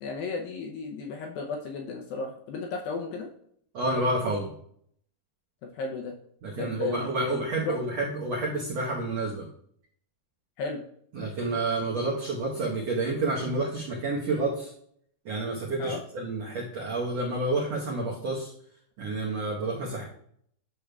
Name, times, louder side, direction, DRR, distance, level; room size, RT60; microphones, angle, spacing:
voice 1, 0.0-3.3 5.6-6.2 6.5-7.8 10.6-10.8 15.8-16.0, left 4 dB, 75° left, 2 dB, 2.2 m, -34 dB
voice 2, 3.7-4.5 6.4-9.4 11.1-14.7 15.2-18.5 19.0-20.0, right 2 dB, 80° right, -3 dB, 1.5 m, -29 dB
10.5 x 6.6 x 2.3 m, 0.66 s
omnidirectional pair, 4.8 m